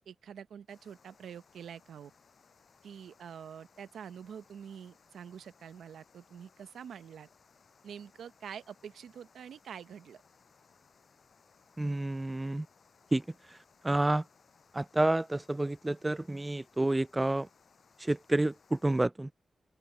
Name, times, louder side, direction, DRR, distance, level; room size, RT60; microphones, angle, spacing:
voice 1, 0.0-2.1 2.8-7.3 7.8-10.2, right 8 dB, 90° right, 0.8 m, -46 dB
sound 1, 0.7-19.1, left 5 dB, 60° left, 8.0 m, -64 dB
voice 2, 11.8-12.7 13.1-13.2 13.8-14.2 14.7-17.5 18.0-19.3, right 2 dB, 20° right, 0.4 m, -29 dB
open air
cardioid pair, 55°, 0 cm